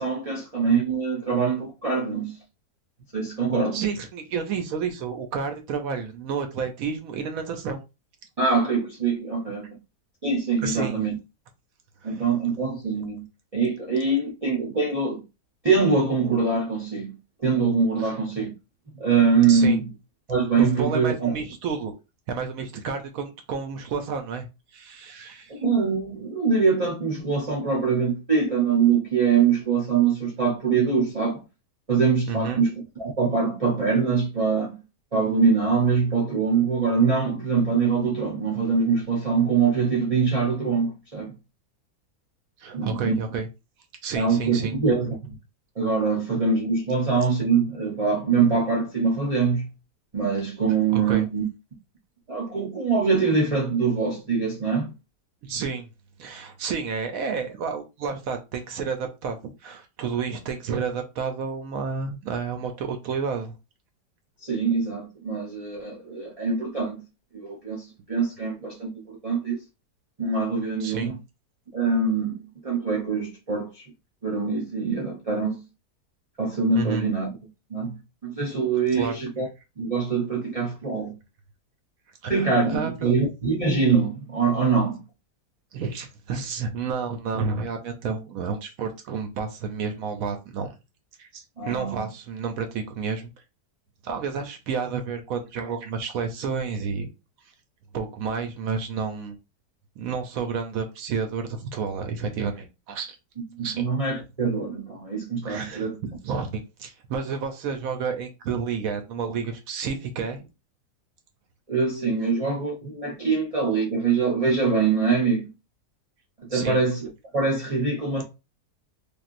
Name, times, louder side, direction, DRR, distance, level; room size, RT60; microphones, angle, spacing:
voice 1, 0.0-2.3 3.1-3.8 8.4-9.7 10.2-11.1 12.0-13.2 13.5-15.2 15.6-17.1 17.4-18.5 19.0-19.8 20.3-21.3 25.5-31.4 31.9-32.7 33.0-34.8 35.1-41.3 42.7-43.1 44.1-45.4 45.8-49.7 50.1-51.4 52.3-54.9 64.4-67.0 67.3-69.6 70.2-71.2 71.7-73.9 74.2-75.6 76.4-77.3 77.7-79.5 79.8-81.1 82.3-85.0 91.6-92.1 103.6-106.0 111.7-115.5 116.4-118.2, right 5 dB, 40° right, 0.5 m, -23 dB
voice 2, 3.7-7.8 10.6-11.0 12.0-12.2 18.0-18.1 19.5-19.8 20.6-21.9 22.3-25.5 32.3-32.6 42.6-43.5 44.0-44.7 50.9-51.3 55.4-55.9 56.2-59.4 59.6-63.6 70.8-71.2 76.7-77.0 78.9-79.2 82.2-83.1 85.7-90.7 91.2-93.3 94.0-97.1 97.9-99.4 100.0-103.2 103.6-103.9 105.4-105.9 106.2-110.5 116.5-116.8, right 5 dB, 70° right, 0.9 m, -30 dB
3.4 x 2.5 x 2.5 m
omnidirectional pair, 1.8 m